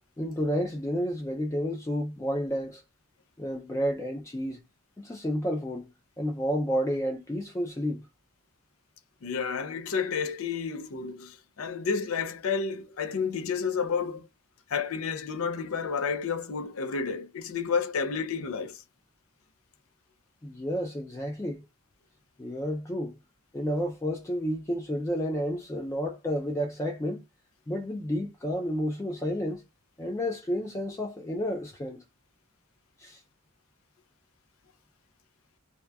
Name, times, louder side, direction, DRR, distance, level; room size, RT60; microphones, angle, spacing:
voice 1, 0.2-2.8 3.4-4.6 5.0-5.9 6.2-8.1 20.4-21.6 22.4-23.2 23.5-27.2 27.7-29.6 30.0-32.0 33.0-33.2, equal, 15° left, 0.3 m, -31 dB
voice 2, 9.2-14.3 14.7-18.8, left 5 dB, 80° left, 0.5 m, -31 dB
2.8 x 2.2 x 2.2 m
head